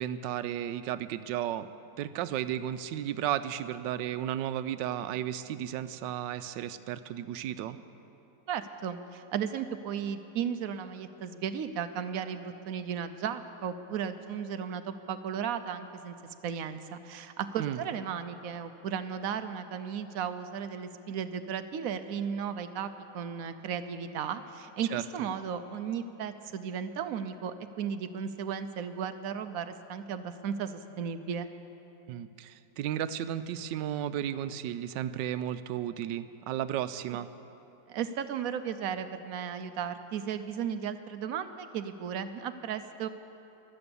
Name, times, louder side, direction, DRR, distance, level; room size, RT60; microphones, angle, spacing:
voice 1, 0.0-1.7 2.0-7.8 17.6-17.8 24.9-25.3 32.1-37.3, right 11 dB, 85° right, 13 dB, 1.2 m, -34 dB
voice 2, 8.5-16.1 16.4-31.5 37.9-43.1, right 7 dB, 65° right, 10 dB, 0.9 m, -35 dB
23.5 x 7.9 x 6.9 m, 2.9 s
omnidirectional pair, 1.9 m